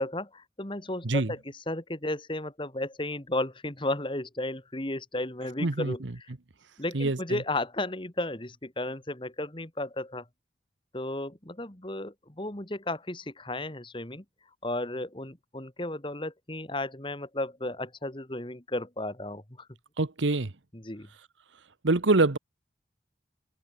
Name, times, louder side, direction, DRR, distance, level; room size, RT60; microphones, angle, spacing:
voice 1, 0.0-1.4 1.7-6.0 6.8-10.2 10.9-14.2 14.6-19.7 20.7-21.1, left 1 dB, 25° left, 2.2 m, -34 dB
voice 2, 5.6-6.1 6.9-7.4 20.0-20.5 21.8-22.4, right 2 dB, 90° right, 1.2 m, -25 dB
head